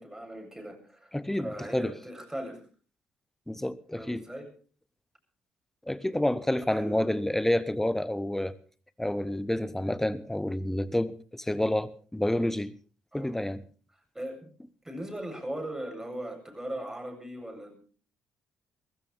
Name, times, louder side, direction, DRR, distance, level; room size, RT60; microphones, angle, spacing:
voice 1, 0.0-1.1 1.4-2.6 3.9-4.5 6.7-7.2 13.1-13.3 14.1-14.5 14.8-17.7, right 1 dB, 10° right, 7.9 m, -38 dB
voice 2, 1.1-1.9 3.5-4.2 5.9-8.5 9.0-12.7 13.1-13.6, left 1 dB, 5° left, 1.2 m, -29 dB
21.0 x 17.5 x 3.6 m
figure-of-eight pair, 45°, 5 cm